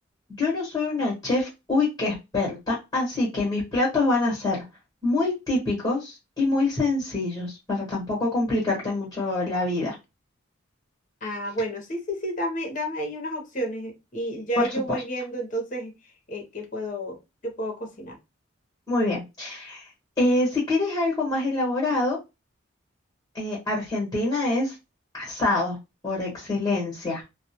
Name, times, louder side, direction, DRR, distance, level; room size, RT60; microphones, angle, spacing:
voice 1, 0.4-4.6 5.0-10.0 14.6-14.7 18.9-19.8 20.2-22.2 23.3-24.7 25.1-25.8 26.0-27.2, left 2 dB, 20° left, -5 dB, 1.1 m, -25 dB
voice 2, 11.2-15.9 16.3-18.2, equal, 40° left, 3 dB, 0.7 m, -31 dB
2.2 x 2.1 x 2.8 m, 0.24 s
head